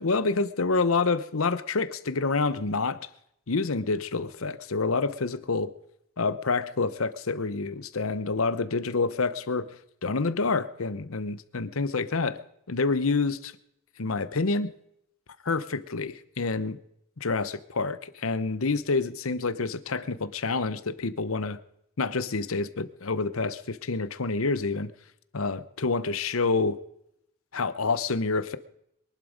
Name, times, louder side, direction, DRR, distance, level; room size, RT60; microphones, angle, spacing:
voice 1, 0.0-3.0 3.5-5.7 6.2-9.8 10.0-12.4 12.7-13.5 14.0-14.7 15.4-16.8 17.2-21.6 22.0-24.9 25.3-26.8 27.5-28.6, left 4 dB, 90° left, 14 dB, 0.9 m, -27 dB
23.0 x 11.5 x 5.2 m, 0.76 s
head